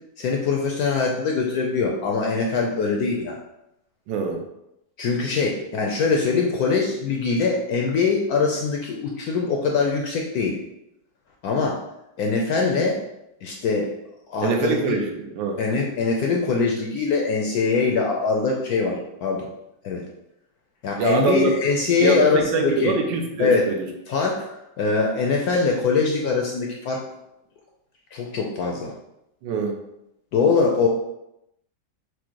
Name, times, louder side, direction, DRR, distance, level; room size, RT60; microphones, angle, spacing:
voice 1, 0.2-3.4 5.0-10.6 11.4-11.8 12.2-13.0 13.4-13.9 14.3-14.8 15.6-19.5 19.8-20.0 20.8-22.9 23.4-23.8 24.1-27.0 28.1-28.9 30.3-30.9, left 4 dB, 70° left, 0 dB, 0.9 m, -22 dB
voice 2, 4.1-4.5 14.4-15.6 21.0-21.5 22.0-23.9 29.4-29.8, right 4 dB, 80° right, 3 dB, 1.3 m, -24 dB
4.9 x 2.1 x 4.5 m, 0.85 s
omnidirectional pair, 2.0 m